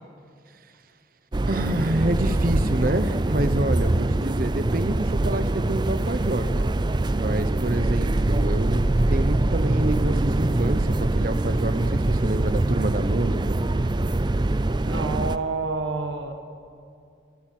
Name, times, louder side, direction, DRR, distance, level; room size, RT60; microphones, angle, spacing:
sound 1, 1.3-15.4, right 2 dB, 25° right, 0.4 m, -23 dB
voice 1, 1.4-6.7 7.2-13.6, right 1 dB, 45° right, 12 dB, 1.0 m, -28 dB
voice 2, 14.8-16.3, right 3 dB, 90° right, 5 dB, 1.5 m, -28 dB
24.0 x 13.5 x 9.4 m, 2.4 s
head